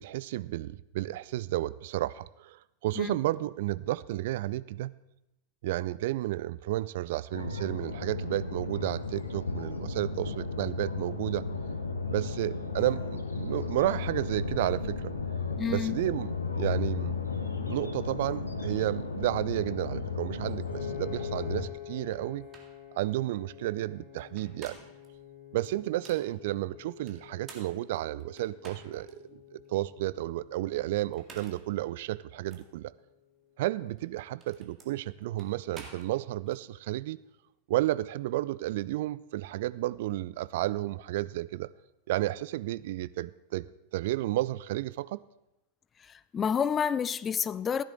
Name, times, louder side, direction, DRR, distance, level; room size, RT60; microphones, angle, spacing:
voice 1, 0.0-4.9 5.6-11.5 12.1-15.1 15.7-17.2 17.7-22.5 22.9-24.8 25.5-32.9 33.6-37.2 37.7-41.7 42.1-43.7 43.9-45.2, right 15 dB, 55° right, 0.3 m, -32 dB
sound 1, 7.3-21.6, left 4 dB, 80° left, 1.0 m, -34 dB
voice 2, 15.6-16.0 46.3-47.8, left 7 dB, 20° left, 0.3 m, -29 dB
Piano, 20.7-32.9, left 11 dB, 50° left, 3.7 m, -47 dB
sound 2, 22.1-22.2 22.5-22.8 24.2-25.1 25.6-26.3 27.1-29.1 29.6-29.7 31.0-31.7 32.5-32.7 33.9-36.6, right 4 dB, 25° right, 2.0 m, -51 dB
15.0 x 10.5 x 3.7 m
figure-of-eight pair, 90°, 0 cm